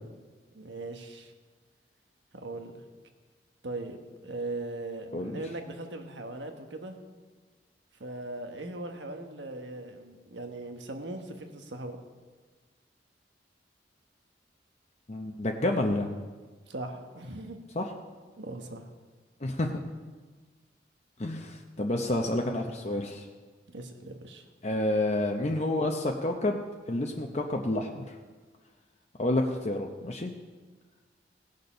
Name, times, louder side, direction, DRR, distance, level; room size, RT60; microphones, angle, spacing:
voice 1, 0.5-1.3 2.3-2.7 3.6-7.0 8.0-12.0 16.7-17.6 18.4-18.9 23.7-24.4, right 2 dB, 85° right, 5 dB, 1.3 m, -39 dB
voice 2, 15.1-16.1 17.8-17.9 19.4-19.7 21.2-23.3 24.6-26.6 26.9-28.1 29.2-30.3, left 1 dB, 40° left, 2 dB, 0.7 m, -29 dB
18.0 x 6.7 x 5.6 m, 1.4 s
head